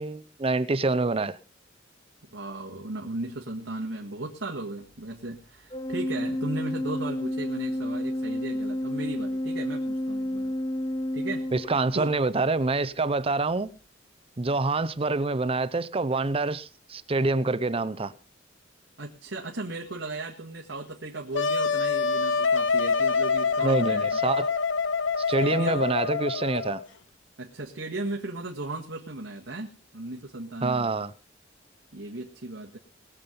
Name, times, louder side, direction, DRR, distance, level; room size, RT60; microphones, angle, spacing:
voice 1, 0.0-1.4 11.5-13.7 14.4-18.1 23.6-24.5 25.3-26.8 30.6-31.1, right 3 dB, 30° right, 0.7 m, -26 dB
voice 2, 2.3-10.5 11.1-11.5 11.9-12.1 19.0-24.2 25.2-25.9 27.4-30.9 31.9-32.8, right 2 dB, 90° right, 1.9 m, -36 dB
Organ, 5.7-12.3, left 1 dB, 25° left, 0.7 m, -30 dB
Wind instrument woodwind instrument, 21.3-26.8, left 5 dB, 90° left, 1.0 m, -26 dB
21.0 x 7.5 x 5.3 m
head